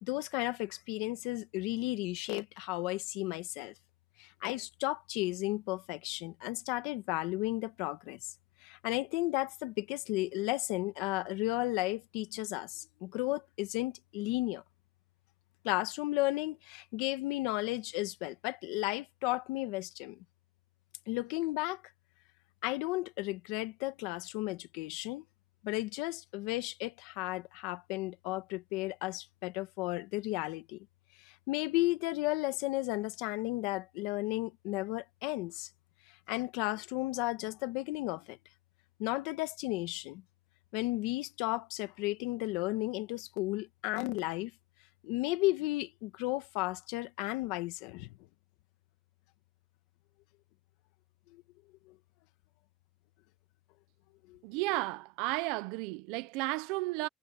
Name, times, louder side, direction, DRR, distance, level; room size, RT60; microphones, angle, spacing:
voice 1, 0.0-3.7 4.2-8.2 8.6-14.6 15.6-20.2 21.1-21.8 22.6-25.2 25.6-30.9 31.2-35.7 36.3-38.4 39.0-40.2 40.7-44.5 45.0-48.1 51.3-51.4 54.3-54.4, left 19 dB, 80° left, 1.3 m, -34 dB
voice 2, 54.4-57.1, right 21 dB, 80° right, 0.7 m, -33 dB
cardioid pair, 170°, 0 cm